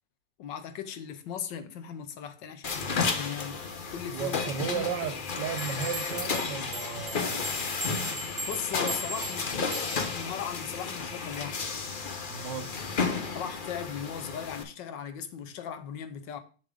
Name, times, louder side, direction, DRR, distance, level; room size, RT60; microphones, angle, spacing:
voice 1, 0.4-4.8 8.5-11.7 13.3-16.4, left 8 dB, 75° left, 1.4 m, -38 dB
sound 1, 2.6-14.6, left 4 dB, 55° left, 0.5 m, -33 dB
voice 2, 4.1-7.4 12.3-12.8, right 7 dB, 70° right, 1.3 m, -34 dB
sound 2, 5.6-10.2, right 1 dB, 25° right, 1.5 m, -39 dB
6.9 x 6.6 x 3.6 m
omnidirectional pair, 2.1 m